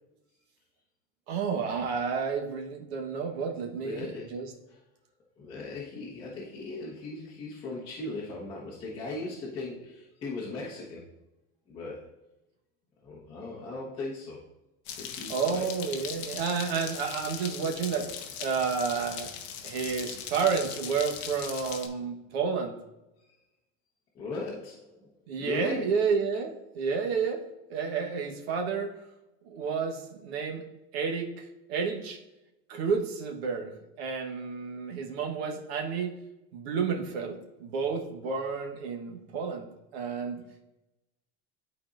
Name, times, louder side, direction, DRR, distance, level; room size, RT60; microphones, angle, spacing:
voice 1, 1.3-4.5 15.3-18.1 18.4-19.3 19.6-22.8 25.3-27.4 27.7-28.9 29.4-30.6 30.9-32.2 32.7-33.7 34.0-36.2 36.5-40.4, right 5 dB, 85° right, 2 dB, 1.2 m, -30 dB
voice 2, 3.8-4.8 5.4-11.0 11.7-12.1 13.0-14.4 15.0-15.7 23.2-23.4 24.1-25.1 25.4-26.0, left 3 dB, 15° left, -8 dB, 1.1 m, -38 dB
sound 1, 14.9-21.9, left 8 dB, 40° left, 0.7 m, -39 dB
11.5 x 4.1 x 2.5 m, 0.93 s
supercardioid pair, 170°, 30 cm